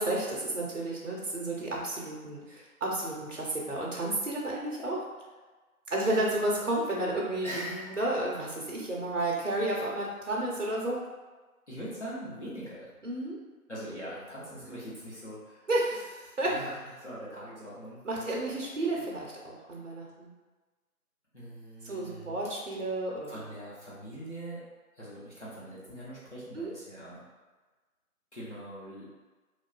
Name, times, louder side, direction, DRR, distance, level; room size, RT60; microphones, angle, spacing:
voice 1, 0.0-5.0 5.9-11.0 13.0-13.4 15.7-16.5 18.0-20.3 21.8-23.4 26.5-26.7, right 1 dB, 55° right, -3 dB, 0.6 m, -32 dB
voice 2, 7.4-8.0 11.7-12.9 13.7-15.7 16.4-18.6 18.8-19.0 21.3-22.4 23.3-24.6 24.9-27.3 28.3-29.1, right 1 dB, 50° left, -9 dB, 0.9 m, -42 dB
2.5 x 2.3 x 2.2 m, 1.3 s
figure-of-eight pair, 175°, 45 cm